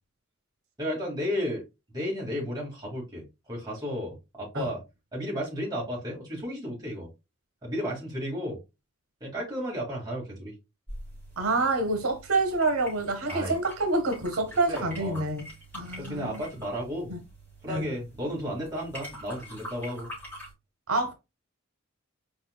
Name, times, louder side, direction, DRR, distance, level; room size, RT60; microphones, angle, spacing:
voice 1, 0.8-1.6 1.9-4.8 5.1-7.1 7.6-8.6 9.2-10.5 13.3-13.5 14.7-15.2 16.0-17.1 17.6-20.1, equal, 20° right, 2.2 m, -33 dB
sound 1, 10.9-20.5, equal, 10° left, 3.1 m, -45 dB
voice 2, 11.4-15.5 15.7-16.4 17.1-17.2 17.7-17.9 20.9-21.1, right 2 dB, 80° right, 1.0 m, -27 dB
4.7 x 4.3 x 2.3 m
head